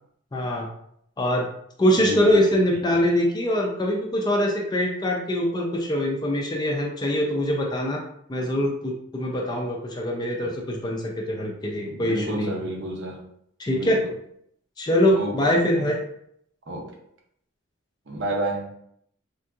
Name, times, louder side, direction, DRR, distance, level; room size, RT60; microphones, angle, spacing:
voice 1, 0.3-0.7 1.2-1.5 1.8-8.0 8.3-12.6 13.6-14.0 14.8-16.0, equal, 20° left, 0 dB, 0.4 m, -23 dB
voice 2, 1.9-3.0 10.4-10.5 11.8-13.2 13.7-13.9 15.1-15.3 15.7-15.9 16.7-16.9 18.1-18.7, right 1 dB, 60° right, 0 dB, 0.7 m, -31 dB
3.6 x 2.6 x 2.3 m, 0.71 s
head